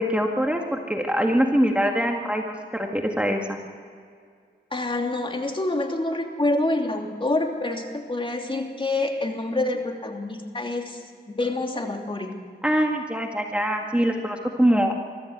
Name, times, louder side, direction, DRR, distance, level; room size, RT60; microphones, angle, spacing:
voice 1, 0.0-3.6 12.6-15.0, equal, 5° right, 2 dB, 2.0 m, -23 dB
voice 2, 4.7-11.0 11.3-12.3, left 2 dB, 25° left, 3 dB, 2.9 m, -27 dB
23.0 x 14.0 x 8.0 m, 2.1 s
cardioid pair, 70°, 19 cm